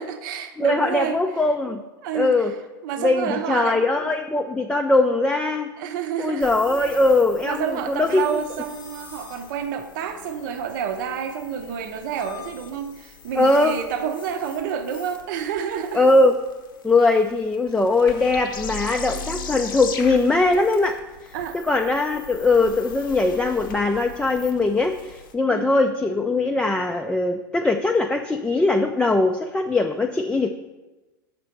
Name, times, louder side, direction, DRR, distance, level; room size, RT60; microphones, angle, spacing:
voice 1, 0.0-1.2 2.0-2.6 2.8-3.8 5.8-6.5 6.8-6.9 7.4-16.1 21.3-21.6 25.5-25.7, right 8 dB, 65° right, 0.7 m, -29 dB
voice 2, 0.6-1.8 2.1-2.5 3.0-5.7 6.2-8.4 13.4-13.8 15.9-16.3 16.8-21.0 21.5-30.5, left 2 dB, 10° left, 0.4 m, -21 dB
sound 1, 6.4-25.3, left 5 dB, 75° left, 0.8 m, -40 dB
5.9 x 4.3 x 6.4 m
hypercardioid pair, 95°, 11 cm